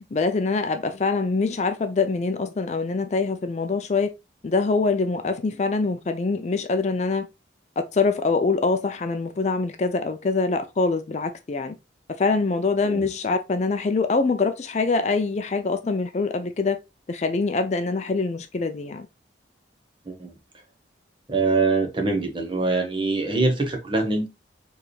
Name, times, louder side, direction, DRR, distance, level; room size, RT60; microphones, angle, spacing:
voice 1, 0.1-4.1 4.4-7.3 7.8-11.8 12.2-16.8 17.1-19.1, left 4 dB, 35° left, 0.4 m, -24 dB
voice 2, 21.3-24.3, right 3 dB, 25° right, 1.0 m, -24 dB
4.6 x 3.3 x 3.1 m
head